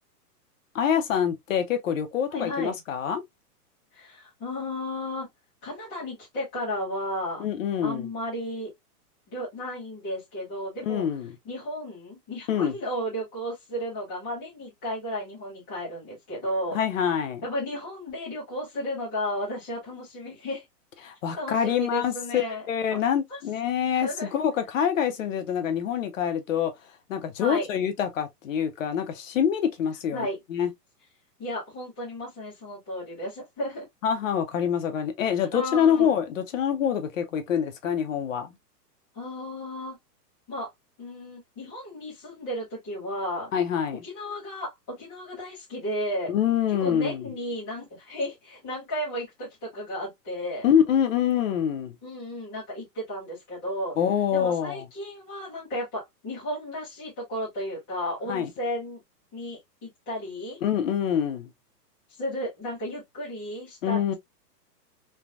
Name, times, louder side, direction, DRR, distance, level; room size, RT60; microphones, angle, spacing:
voice 1, 0.7-3.2 7.4-8.1 10.9-11.3 12.5-12.7 16.7-17.4 21.0-26.7 27.1-30.7 34.0-38.5 43.5-44.0 46.3-47.3 50.6-52.0 54.0-54.8 58.3-58.5 60.6-61.5 63.8-64.1, left 8 dB, 55° left, 0.6 m, -25 dB
voice 2, 2.3-2.8 3.9-5.3 5.6-7.4 7.8-8.7 9.3-11.0 11.4-16.8 17.4-20.6 21.4-22.7 22.9-23.4 23.9-24.3 27.4-27.7 30.1-30.4 31.4-33.9 35.4-36.1 39.1-40.0 40.5-40.7 41.0-43.5 44.0-46.3 46.7-50.7 52.0-53.9 54.3-59.0 59.3-60.6 62.1-64.1, equal, 5° left, 0.4 m, -34 dB
3.3 x 2.2 x 2.3 m
hypercardioid pair, 160°, 48 cm